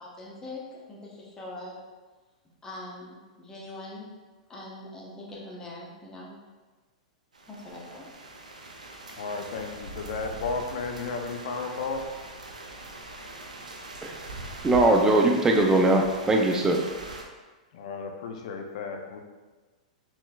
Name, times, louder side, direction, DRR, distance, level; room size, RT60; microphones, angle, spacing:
voice 1, 0.0-1.8 2.6-4.1 4.5-6.4 7.5-8.1, left 2 dB, 15° left, -4 dB, 1.0 m, -42 dB
sound 1, 7.3-17.2, right 2 dB, 90° right, 0.5 m, -42 dB
voice 2, 9.2-12.0 17.7-19.2, left 4 dB, 60° left, 4 dB, 0.6 m, -33 dB
voice 3, 14.6-16.9, right 2 dB, 15° right, 1 dB, 0.5 m, -21 dB
4.2 x 3.8 x 2.4 m, 1.3 s
hypercardioid pair, 105°, 4 cm